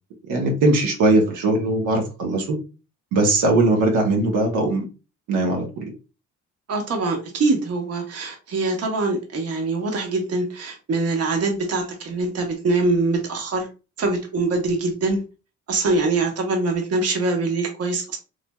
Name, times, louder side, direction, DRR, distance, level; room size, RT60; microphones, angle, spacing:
voice 1, 0.3-2.6 3.1-4.8 5.3-5.9, right 2 dB, 80° right, 1 dB, 0.9 m, -20 dB
voice 2, 6.7-13.7 14.0-15.2 15.7-18.2, right 3 dB, 55° right, 2 dB, 0.9 m, -23 dB
3.1 x 2.4 x 2.2 m, 0.31 s
cardioid pair, 90°, 30 cm